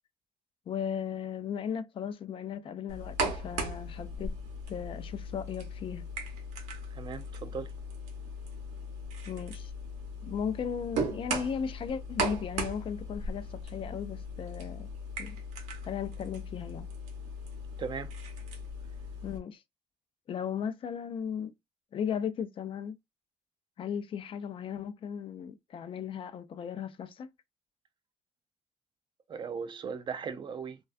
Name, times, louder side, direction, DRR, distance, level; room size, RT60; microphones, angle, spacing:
voice 1, 0.7-4.3 4.7-6.1 9.3-9.7 10.2-14.9 15.2-15.4 15.8-16.9 19.2-19.6 20.3-21.5 21.9-23.0 23.8-27.3, left 7 dB, 50° left, 0.4 m, -36 dB
sound 1, 2.9-19.4, right 1 dB, 85° right, 0.7 m, -38 dB
voice 2, 6.9-7.7 17.8-18.1 29.3-30.8, right 6 dB, 45° right, 0.4 m, -37 dB
2.3 x 2.2 x 2.5 m
cardioid pair, 85°, 12 cm